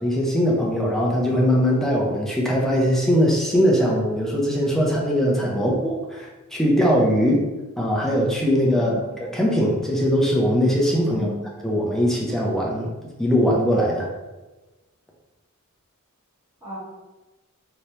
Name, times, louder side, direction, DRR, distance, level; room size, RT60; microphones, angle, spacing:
voice 1, 0.0-7.4 7.8-11.3 11.6-12.9 13.2-14.1, equal, ahead, -3 dB, 0.5 m, -21 dB
voice 2, 11.1-11.5 16.6-16.8, left 1 dB, 15° right, -9 dB, 1.4 m, -36 dB
3.3 x 2.9 x 2.8 m, 1.2 s
head